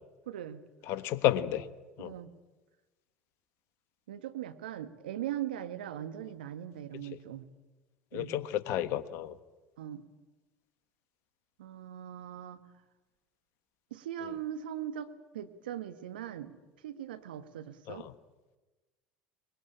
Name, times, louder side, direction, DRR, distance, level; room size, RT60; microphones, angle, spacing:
voice 1, 0.3-0.6 2.0-2.3 4.1-7.4 8.1-8.3 9.8-10.0 11.6-12.6 13.9-16.5 16.8-18.1, right 11 dB, 80° right, 10 dB, 1.6 m, -40 dB
voice 2, 0.9-1.6 2.0-2.1 8.1-9.3 17.9-18.1, left 12 dB, 60° left, 12 dB, 1.4 m, -31 dB
23.5 x 21.5 x 8.9 m, 1.2 s
hypercardioid pair, 75°, 5 cm